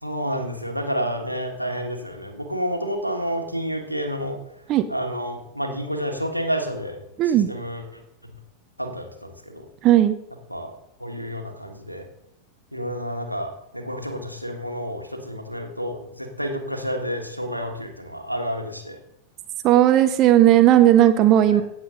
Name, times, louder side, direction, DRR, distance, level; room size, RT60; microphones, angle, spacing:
voice 1, 0.0-4.4 4.9-7.0 7.2-8.0 8.8-9.7 10.5-10.7 11.0-12.1 12.7-19.0 21.5-21.6, equal, 90° right, 3 dB, 1.6 m, -30 dB
voice 2, 9.8-10.1 19.6-21.6, right 12 dB, 35° right, 9 dB, 0.6 m, -15 dB
17.0 x 7.3 x 3.9 m, 0.81 s
figure-of-eight pair, 90°, 0 cm